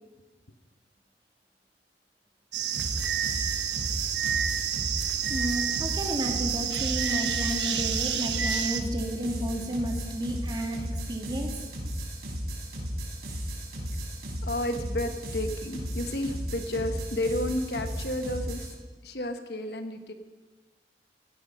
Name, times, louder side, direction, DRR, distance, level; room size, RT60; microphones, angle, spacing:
sound 1, 2.5-8.8, right 8 dB, 85° right, 1.3 m, -29 dB
sound 2, 2.7-18.7, equal, 60° right, 4.8 m, -35 dB
voice 1, 5.3-11.5, equal, 25° right, 2 dB, 2.3 m, -32 dB
voice 2, 14.4-18.7 19.0-20.1, left 1 dB, 65° left, 7 dB, 1.3 m, -31 dB
16.5 x 15.0 x 5.5 m, 1.3 s
head